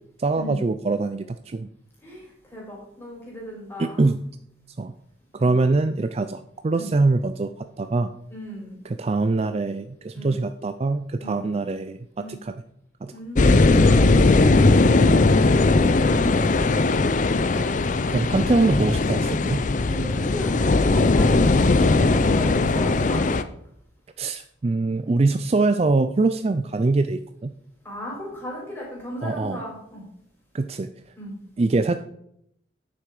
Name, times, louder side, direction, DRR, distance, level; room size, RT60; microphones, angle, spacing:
voice 1, 0.2-1.7 3.8-4.2 4.8-4.9 5.3-8.1 8.8-12.6 13.0-13.1 15.1-15.3 18.1-19.6 24.2-27.5 29.2-29.6 30.5-30.9 31.6-32.0, right 3 dB, 30° right, 10 dB, 0.4 m, -24 dB
voice 2, 2.0-4.1 5.4-5.5 6.7-6.9 8.3-8.8 10.1-10.4 11.2-11.5 12.2-12.3 13.1-13.5 13.8-14.5 16.0-17.1 19.8-23.2 27.8-30.0 31.2-31.4, equal, 10° left, -4 dB, 4.0 m, -37 dB
sound 1, 13.3-23.4, left 3 dB, 40° left, 0.5 m, -19 dB
9.2 x 6.8 x 4.8 m, 0.72 s
head